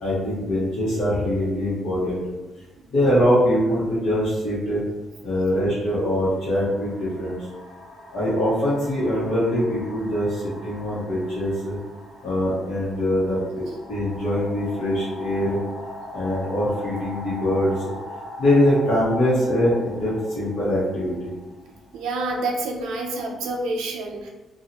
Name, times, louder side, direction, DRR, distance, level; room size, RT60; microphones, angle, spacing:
voice 1, 0.0-2.2 2.9-4.8 5.2-7.4 8.1-11.7 12.2-13.6 13.9-15.6 16.1-17.8 18.4-21.3, equal, 75° left, -10 dB, 1.0 m, -23 dB
sound 1, 4.7-4.9 5.8-22.5, left 1 dB, 40° left, 1.1 m, -41 dB
voice 2, 21.9-24.3, right 2 dB, 90° right, 1 dB, 0.3 m, -28 dB
2.7 x 2.3 x 2.7 m, 1.1 s
cardioid pair, 90°, 0 cm